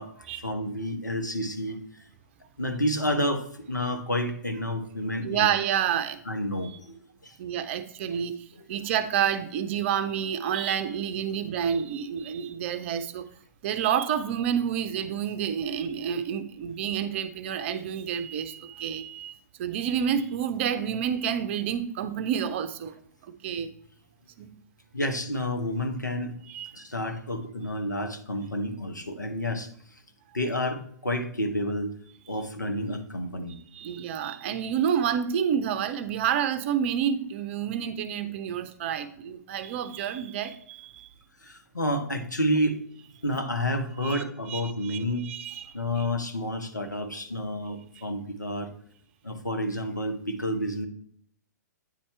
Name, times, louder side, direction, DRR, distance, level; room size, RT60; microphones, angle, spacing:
voice 1, 0.0-1.8 2.6-5.5 6.3-7.4 8.6-8.7 24.9-26.3 26.7-29.7 30.3-31.9 32.3-33.6 41.4-42.8 43.2-45.3 45.7-48.7 49.2-50.9, equal, 85° left, 1.0 m, -30 dB
voice 2, 5.2-6.2 7.4-8.4 8.7-13.3 13.6-19.3 19.6-23.7 24.4-24.5 26.5-26.9 33.7-41.1 44.0-44.2 44.5-46.1 48.0-48.1, right 8 dB, 40° right, 0.6 m, -29 dB
9.2 x 4.2 x 3.3 m
figure-of-eight pair, 115°, 10 cm